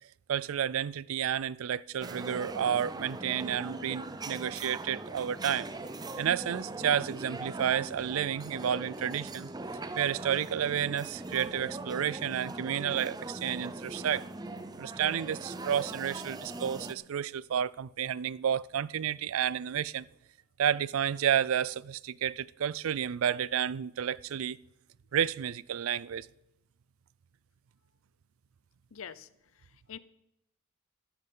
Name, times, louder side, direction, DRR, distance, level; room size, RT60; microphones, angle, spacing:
voice 1, 0.3-5.7 6.2-9.5 10.0-14.2 14.8-20.1 20.6-24.6 25.1-26.3, right 9 dB, 80° right, 0.4 m, -31 dB
sound 1, 2.0-16.9, right 2 dB, 20° right, 0.6 m, -41 dB
voice 2, 28.9-29.3 29.5-30.0, left 8 dB, 75° left, 0.6 m, -45 dB
13.5 x 9.9 x 5.5 m
head